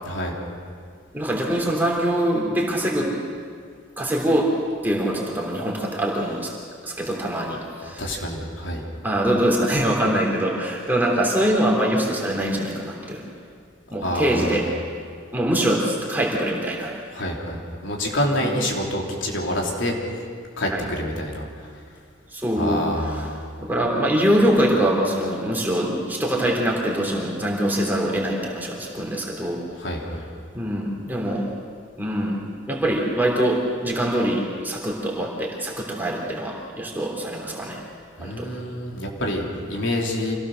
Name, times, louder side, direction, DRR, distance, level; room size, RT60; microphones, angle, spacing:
voice 1, 0.0-0.3 7.8-8.8 14.0-14.7 17.1-20.0 20.6-21.7 22.5-23.4 29.7-30.2 38.2-40.3, left 1 dB, 70° left, -1 dB, 3.2 m, -27 dB
voice 2, 1.1-3.1 4.0-4.6 4.8-6.5 6.8-8.2 9.0-13.2 13.9-14.7 15.3-16.9 18.4-18.5 20.7-20.9 22.3-22.8 23.1-23.3 23.6-29.6 30.5-31.5 32.0-32.4 32.7-37.8 38.2-38.5, right 1 dB, 10° right, -2 dB, 3.2 m, -23 dB
26.0 x 17.0 x 6.5 m, 2.2 s
head